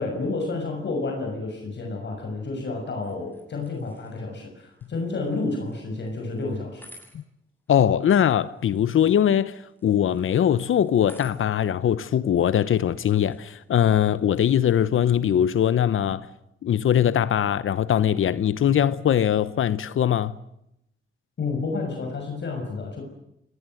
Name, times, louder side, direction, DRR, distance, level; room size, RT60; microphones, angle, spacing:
voice 1, 0.0-6.9 21.4-23.0, left 3 dB, 60° left, 6.5 m, -30 dB
sound 1, 2.9-15.3, left 1 dB, 10° left, 7.9 m, -56 dB
voice 2, 7.7-16.3 16.6-20.3, left 9 dB, 80° left, 0.9 m, -21 dB
29.0 x 19.5 x 7.8 m
wide cardioid pair, 110°, 21 cm